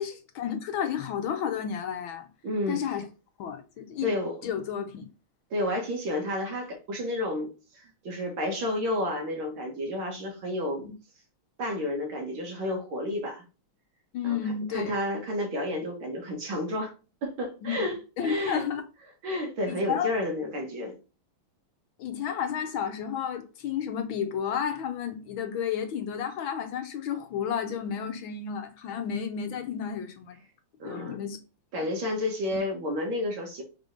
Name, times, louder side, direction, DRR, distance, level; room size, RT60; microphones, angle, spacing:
voice 1, 0.0-2.3 2.7-3.0 3.4-4.1 4.4-5.1 14.1-14.9 17.6-17.8 18.2-18.8 19.7-20.1 22.0-30.4 30.8-31.4 31.8-31.9, left 8 dB, 70° left, 1.5 m, -32 dB
voice 2, 2.4-2.8 4.0-4.5 5.5-10.9 11.6-13.4 14.2-16.9 17.2-18.7 19.2-20.9 30.8-31.2 31.7-33.6, left 1 dB, 70° right, 2.2 m, -31 dB
5.2 x 4.1 x 5.2 m
omnidirectional pair, 2.4 m